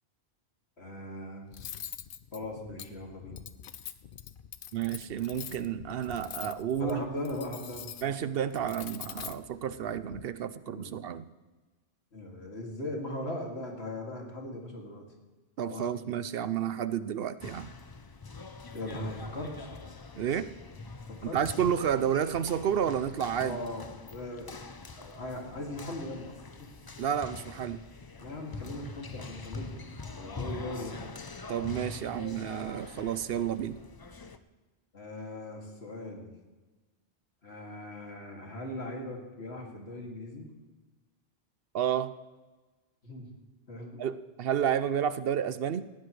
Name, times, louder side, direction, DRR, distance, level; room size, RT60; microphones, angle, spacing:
voice 1, 0.8-1.5 2.3-3.4 6.8-7.9 10.7-10.9 12.1-15.0 15.7-16.1 18.7-19.8 21.1-21.4 23.4-24.5 25.0-26.3 26.6-26.7 28.2-29.9 30.1-31.1 34.9-36.3 37.4-40.5 43.0-43.3 43.7-44.0, left 1 dB, 80° left, 0 dB, 2.7 m, -39 dB
Cutlery silverware, 1.5-10.2, left 9 dB, 60° left, 0.8 m, -45 dB
voice 2, 4.7-7.1 8.0-11.3 15.6-17.7 20.2-20.5 21.3-23.6 27.0-27.8 31.5-33.8 41.7-42.1 44.0-45.9, right 9 dB, 65° right, 14 dB, 0.8 m, -31 dB
sound 1, 17.4-34.4, left 3 dB, 30° left, 0.5 m, -44 dB
19.0 x 15.0 x 3.2 m, 1.2 s
omnidirectional pair, 1.1 m